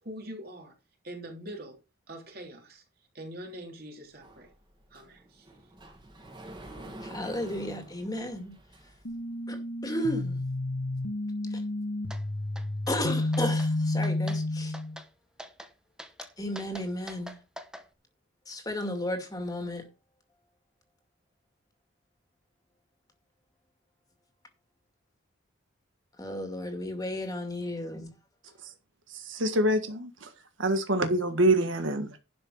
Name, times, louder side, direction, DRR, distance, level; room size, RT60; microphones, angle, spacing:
voice 1, 0.0-0.7 1.0-1.8 2.1-2.8 3.1-4.5 4.9-5.5, right 1 dB, 50° right, 3.6 m, -43 dB
Sliding door, 4.2-9.2, right 1 dB, 25° right, 2.4 m, -47 dB
voice 2, 7.0-8.5 9.5-10.4 11.5-11.6 12.9-14.8 16.4-17.3 18.5-19.9 26.2-28.1, left 1 dB, 20° left, 2.3 m, -33 dB
sound 1, 9.0-15.0, left 2 dB, 85° left, 2.0 m, -31 dB
sound 2, 12.1-12.2 12.6-13.0 13.3-13.7 14.0-14.4 14.7-15.1 15.4-15.7 16.0-17.8, equal, 5° right, 1.1 m, -44 dB
voice 3, 29.1-30.3 30.6-32.2, right 1 dB, 70° right, 1.6 m, -26 dB
11.5 x 5.8 x 6.4 m
head